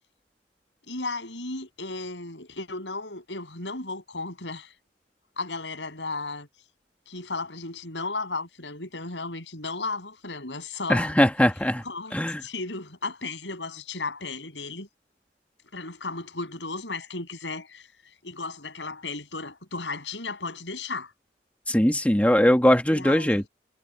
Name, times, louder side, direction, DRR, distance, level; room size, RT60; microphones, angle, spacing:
voice 1, 0.9-4.7 5.4-6.5 7.1-11.1 11.8-12.2 12.4-14.9 15.7-17.9 18.2-21.1 22.9-23.4, left 3 dB, 90° left, 7.2 m, -34 dB
voice 2, 10.9-11.8 12.1-12.4 21.7-23.5, equal, 10° left, 1.7 m, -20 dB
head